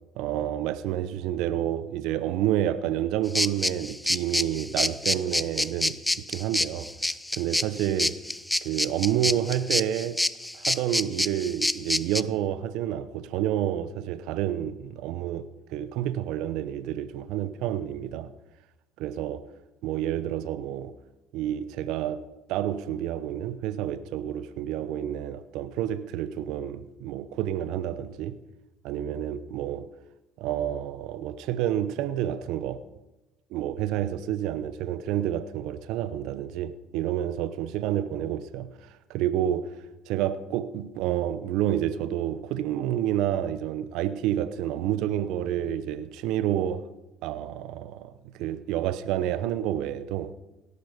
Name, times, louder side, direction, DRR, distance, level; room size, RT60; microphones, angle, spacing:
voice 1, 0.1-6.9 7.3-8.2 8.6-10.2 10.5-18.3 19.0-19.5 19.8-21.0 21.3-28.4 28.8-29.9 30.4-32.8 33.5-39.8 40.1-46.9 47.2-50.3, right 11 dB, 75° right, 0.8 m, -29 dB
sound 1, 3.4-12.2, left 1 dB, 5° left, 0.6 m, -27 dB
17.5 x 12.0 x 5.2 m
supercardioid pair, 70°, 0 cm